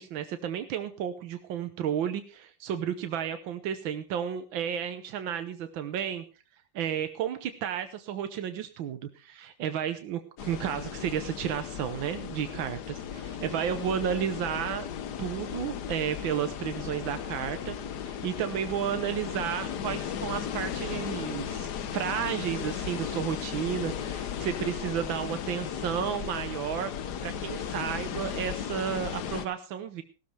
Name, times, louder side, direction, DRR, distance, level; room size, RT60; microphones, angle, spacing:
voice 1, 0.0-6.2 6.7-14.9 15.2-17.8 18.0-26.9 27.2-30.0, right 9 dB, 90° right, 9 dB, 1.7 m, -32 dB
sound 1, 10.4-29.5, left 8 dB, 65° left, 1.4 m, -36 dB
17.0 x 13.0 x 3.4 m, 0.34 s
omnidirectional pair, 2.1 m